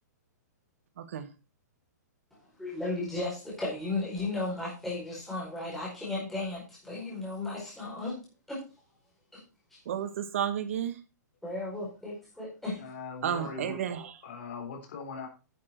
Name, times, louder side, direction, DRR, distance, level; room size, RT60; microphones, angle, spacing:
voice 1, 1.0-1.3 9.8-11.0 13.2-14.1, right 9 dB, 45° right, 1.5 m, -32 dB
voice 2, 2.6-8.1 8.5-8.6 9.7-9.8 11.4-12.8, left 2 dB, ahead, 4.8 m, -35 dB
voice 3, 12.7-13.8 14.2-15.3, left 5 dB, 40° left, 3.9 m, -40 dB
10.5 x 7.6 x 4.4 m
hypercardioid pair, 175°, 10 cm